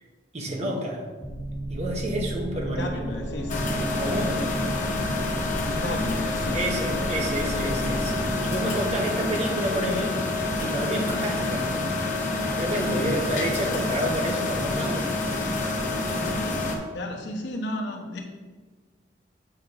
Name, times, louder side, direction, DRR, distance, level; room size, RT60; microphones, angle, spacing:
voice 1, 0.3-1.0 1.7-3.1 4.0-4.4 6.5-10.2 10.6-11.7 12.6-15.1, right 1 dB, 35° right, 0 dB, 1.1 m, -29 dB
sound 1, 1.2-8.3, right 1 dB, 5° right, 0.6 m, -33 dB
voice 2, 2.5-3.6 5.5-6.6 16.9-18.2, left 1 dB, 70° left, 1 dB, 1.0 m, -33 dB
sound 2, 3.5-16.8, left 2 dB, 45° left, 1.0 m, -27 dB
8.1 x 3.0 x 5.4 m, 1.4 s
head